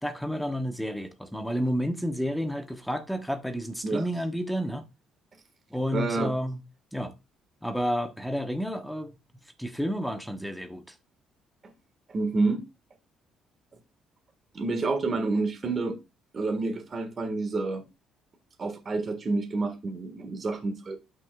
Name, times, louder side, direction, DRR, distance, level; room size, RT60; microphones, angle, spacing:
voice 1, 0.0-4.8 5.7-6.6 6.9-7.1 7.6-9.2 9.6-10.9, equal, ahead, 1.1 m, -30 dB
voice 2, 5.9-6.3 12.1-12.6 14.5-16.0 16.3-17.8 18.6-21.0, right 3 dB, 35° right, 1.7 m, -28 dB
12.0 x 6.0 x 2.4 m
cardioid pair, 100°, 0 cm